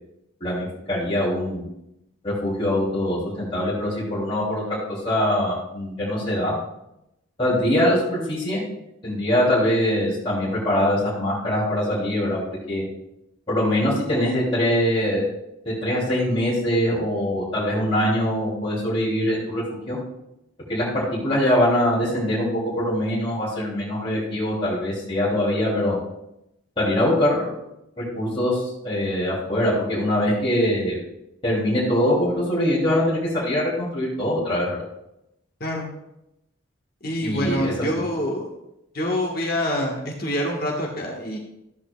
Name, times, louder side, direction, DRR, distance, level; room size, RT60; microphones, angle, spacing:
voice 1, 0.4-1.6 2.2-6.6 7.4-8.6 9.0-12.8 13.5-15.2 15.6-19.6 19.9-20.0 20.7-26.0 26.8-27.5 28.0-31.0 31.4-34.7 37.2-38.0, left 1 dB, 25° left, -10 dB, 3.1 m, -23 dB
voice 2, 37.0-38.4 38.9-41.4, left 1 dB, 45° left, -1 dB, 1.6 m, -26 dB
14.0 x 8.8 x 2.4 m, 0.85 s
head